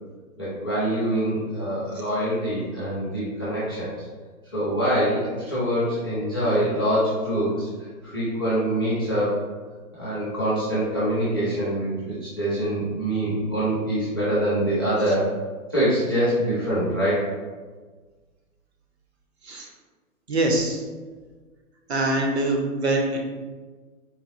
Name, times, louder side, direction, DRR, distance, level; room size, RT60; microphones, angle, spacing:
voice 1, 0.4-3.9 4.5-7.7 8.0-9.3 9.9-15.3 15.7-17.3, right 1 dB, 15° left, -12 dB, 0.4 m, -24 dB
voice 2, 20.3-20.8 21.9-23.2, right 1 dB, 50° right, 0 dB, 0.5 m, -24 dB
4.0 x 2.2 x 2.6 m, 1.4 s
hypercardioid pair, 155°, 44 cm